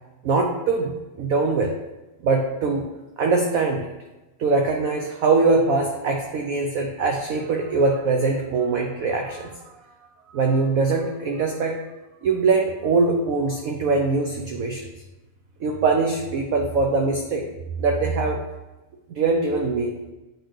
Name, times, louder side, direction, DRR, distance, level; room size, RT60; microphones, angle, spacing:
voice 1, 0.2-0.9 1.2-1.8 2.2-2.9 3.2-3.9 4.4-9.6 10.3-11.8 12.2-14.9 15.6-17.5 17.8-18.4 19.1-19.9, right 3 dB, 75° right, 2 dB, 0.8 m, -22 dB
8.8 x 3.9 x 3.2 m, 1.1 s
omnidirectional pair, 2.1 m